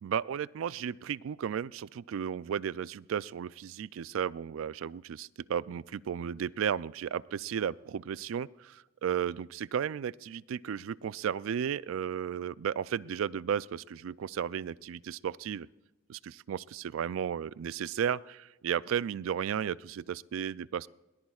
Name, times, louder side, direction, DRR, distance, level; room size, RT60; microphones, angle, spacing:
voice 1, 0.0-15.7 16.1-20.9, right 8 dB, 80° right, 20 dB, 0.3 m, -34 dB
21.5 x 18.0 x 2.4 m, 1.1 s
head